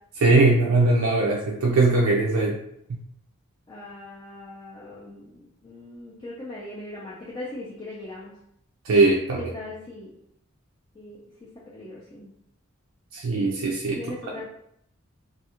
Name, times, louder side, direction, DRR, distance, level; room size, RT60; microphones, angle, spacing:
voice 1, 0.2-2.6 2.9-3.0 8.9-9.5 13.1-14.0, right 3 dB, 75° right, -2 dB, 0.4 m, -20 dB
voice 2, 3.7-8.3 9.4-10.2 10.9-11.2 11.5-12.3 13.9-14.4, left 1 dB, 20° left, -7 dB, 0.4 m, -39 dB
2.4 x 2.3 x 2.8 m, 0.75 s
head